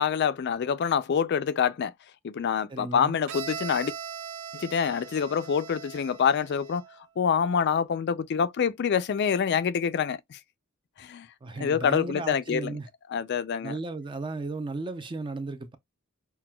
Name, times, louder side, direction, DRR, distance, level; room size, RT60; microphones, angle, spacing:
voice 1, 0.0-1.9 2.2-3.9 4.5-6.8 7.2-10.4 11.0-11.3 11.6-12.8 13.1-13.8, left 7 dB, 55° left, 0.4 m, -26 dB
voice 2, 2.7-3.2 11.4-12.9 13.6-15.8, right 3 dB, 25° right, 0.4 m, -35 dB
Bowed string instrument, 3.3-7.0, right 7 dB, 70° right, 0.5 m, -40 dB
5.8 x 2.2 x 2.2 m
head